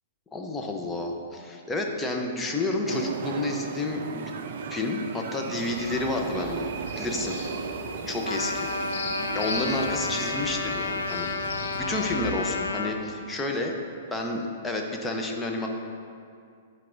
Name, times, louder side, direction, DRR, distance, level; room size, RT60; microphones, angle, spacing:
voice 1, 0.3-4.3 4.7-6.7 7.0-7.3 8.1-8.7 9.3-11.3 11.8-13.7 14.1-15.7, left 2 dB, 15° left, 1 dB, 0.8 m, -30 dB
sound 1, 2.9-12.3, right 5 dB, 55° right, 0.4 m, -36 dB
sound 2, 5.7-12.6, left 3 dB, 60° left, 1.4 m, -40 dB
Trumpet, 8.3-12.9, left 4 dB, 85° left, 0.4 m, -31 dB
10.5 x 4.7 x 2.6 m, 2.4 s
figure-of-eight pair, 110°, 0 cm